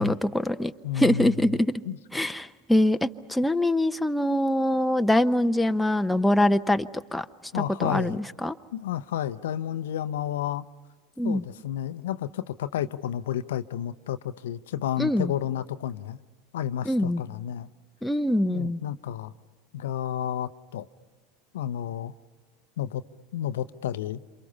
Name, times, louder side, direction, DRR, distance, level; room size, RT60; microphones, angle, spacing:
voice 1, 0.0-1.7 2.1-7.2 7.5-8.5 11.2-11.4 15.0-15.3 16.9-17.2 18.0-18.8, left 1 dB, 5° left, 8 dB, 0.8 m, -24 dB
voice 2, 0.8-1.6 1.9-2.0 7.5-8.2 8.7-10.7 11.2-16.2 16.5-17.7 18.4-19.3 19.7-20.9 21.5-22.1 22.8-23.0 23.3-24.2, left 10 dB, 70° left, 12 dB, 0.7 m, -31 dB
28.0 x 27.5 x 5.6 m, 1.4 s
hypercardioid pair, 85°, 0 cm